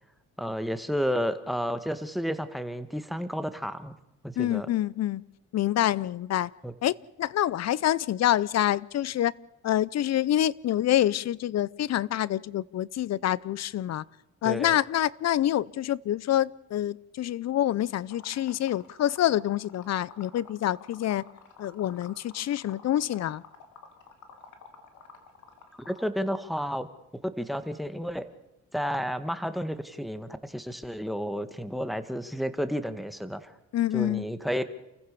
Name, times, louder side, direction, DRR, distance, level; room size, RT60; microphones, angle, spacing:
voice 1, 0.4-3.9 4.2-4.7 6.6-6.7 14.4-14.8 25.9-26.9 27.2-28.3 28.7-33.5 33.9-34.6, equal, ahead, 1.7 m, -31 dB
voice 2, 4.4-5.2 5.5-6.5 6.8-9.3 9.6-14.0 14.4-21.2 21.6-23.4 33.7-34.2, left 12 dB, 60° left, 0.7 m, -26 dB
Liquid, 18.1-26.1, left 6 dB, 80° left, 3.1 m, -50 dB
29.0 x 15.0 x 7.0 m
cardioid pair, 90°, 30 cm